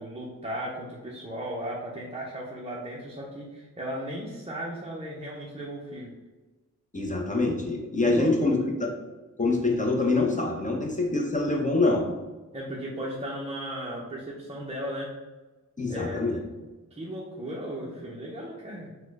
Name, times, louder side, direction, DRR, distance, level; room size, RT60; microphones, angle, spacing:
voice 1, 0.0-6.1 8.0-8.3 8.6-8.7 12.5-15.1 15.9-16.2 16.9-18.9, equal, 20° right, -4 dB, 0.6 m, -36 dB
voice 2, 6.9-8.9 9.4-12.1 15.8-16.4, left 2 dB, 25° left, 0 dB, 0.6 m, -25 dB
4.3 x 2.2 x 4.5 m, 1.2 s
wide cardioid pair, 120°, 32 cm